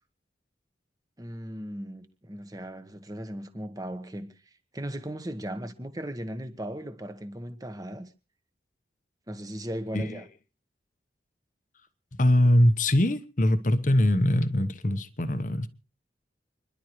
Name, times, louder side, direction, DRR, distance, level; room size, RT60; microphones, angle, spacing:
voice 1, 1.2-4.3 4.7-8.1 9.3-10.3, equal, 20° right, 1.3 m, -37 dB
voice 2, 12.2-15.7, left 1 dB, 45° left, 1.0 m, -22 dB
29.5 x 11.5 x 3.1 m
head